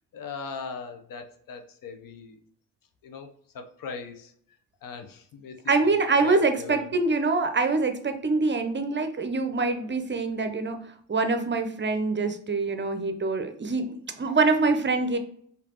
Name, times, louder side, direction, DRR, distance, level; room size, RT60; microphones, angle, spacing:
voice 1, 0.1-2.4 3.0-3.3 3.5-4.3 4.8-6.0 6.2-6.9, left 5 dB, 60° left, 6 dB, 0.9 m, -39 dB
voice 2, 5.7-10.8 11.1-15.2, right 3 dB, 30° right, 8 dB, 0.7 m, -25 dB
4.9 x 3.3 x 2.9 m, 0.63 s
hypercardioid pair, 55°, 38 cm